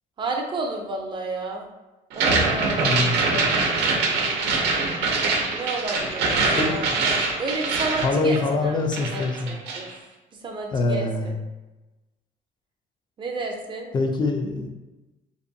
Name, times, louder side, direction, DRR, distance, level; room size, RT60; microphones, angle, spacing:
voice 1, 0.2-1.7 2.1-3.6 5.5-6.9 7.4-8.8 9.1-9.9 10.4-11.3 13.2-13.9, right 2 dB, 30° right, 2 dB, 0.5 m, -31 dB
sound 1, 2.1-8.7 8.9-9.9, right 3 dB, 90° right, 0.5 m, -23 dB
voice 2, 2.8-3.4 6.5-6.8 8.0-9.6 10.7-11.4 13.9-14.7, left 3 dB, 25° left, 3 dB, 0.4 m, -24 dB
2.6 x 2.2 x 2.6 m, 1.1 s
cardioid pair, 110°, 17 cm